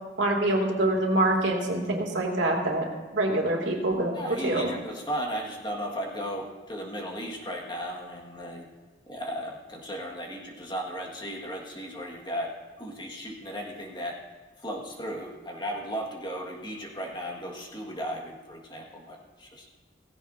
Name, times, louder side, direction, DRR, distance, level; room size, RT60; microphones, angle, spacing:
voice 1, 0.2-2.9 3.1-4.7, right 1 dB, 90° right, 0 dB, 2.5 m, -25 dB
voice 2, 4.1-8.7 9.1-14.2 14.6-19.7, equal, 25° left, 0 dB, 1.7 m, -35 dB
16.5 x 15.5 x 2.7 m, 1.4 s
head